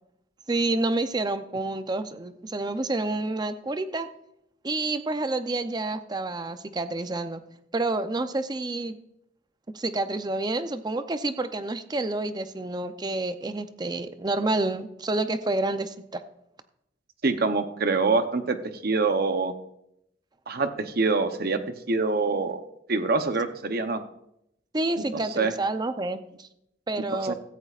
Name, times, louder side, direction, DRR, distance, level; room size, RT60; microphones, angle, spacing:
voice 1, 0.5-4.1 4.6-7.4 7.7-9.0 9.7-16.2 24.7-26.5 26.9-27.3, right 2 dB, 20° right, 10 dB, 0.6 m, -29 dB
voice 2, 17.2-19.5 20.5-22.6 22.9-24.0 25.1-25.5 27.2-27.3, right 3 dB, 55° right, 8 dB, 0.8 m, -25 dB
16.5 x 14.0 x 2.5 m, 0.81 s
head